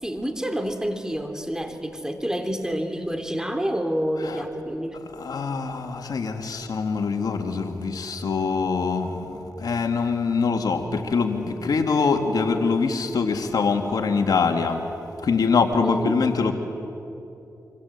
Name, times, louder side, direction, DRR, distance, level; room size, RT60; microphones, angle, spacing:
voice 1, 0.0-5.0 15.8-16.2, equal, 10° right, 6 dB, 3.3 m, -28 dB
voice 2, 5.2-14.8 15.2-16.5, left 4 dB, 70° left, 5 dB, 2.0 m, -24 dB
26.0 x 25.5 x 8.2 m, 2.9 s
cardioid pair, 55°, 7 cm